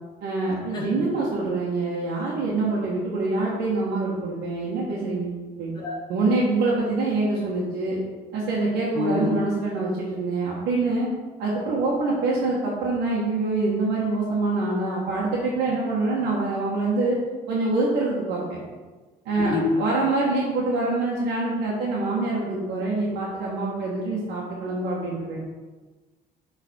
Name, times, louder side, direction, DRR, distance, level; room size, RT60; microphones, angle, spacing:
voice 1, 0.2-5.7 6.1-8.0 8.3-11.1 11.4-17.2 17.5-18.6 19.2-25.4, right 3 dB, 85° right, -6 dB, 1.5 m, -25 dB
voice 2, 0.7-1.1 5.8-5.9 9.0-9.3 19.3-19.7, left 4 dB, 25° left, -3 dB, 1.9 m, -27 dB
8.2 x 4.0 x 4.3 m, 1.3 s
cardioid pair, 110°, 17 cm